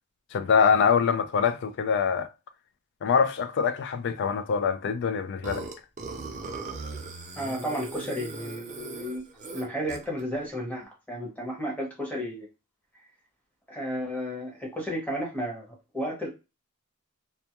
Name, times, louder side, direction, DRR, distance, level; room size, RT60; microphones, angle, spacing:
voice 1, 0.3-2.3 3.0-5.6, left 6 dB, 55° left, 0.3 m, -24 dB
Burping eructation, 5.4-10.2, right 3 dB, 35° right, 0.5 m, -38 dB
voice 2, 7.4-9.2 9.5-12.5 13.7-15.7 15.9-16.3, equal, 5° left, 0.9 m, -32 dB
2.2 x 2.1 x 2.8 m
head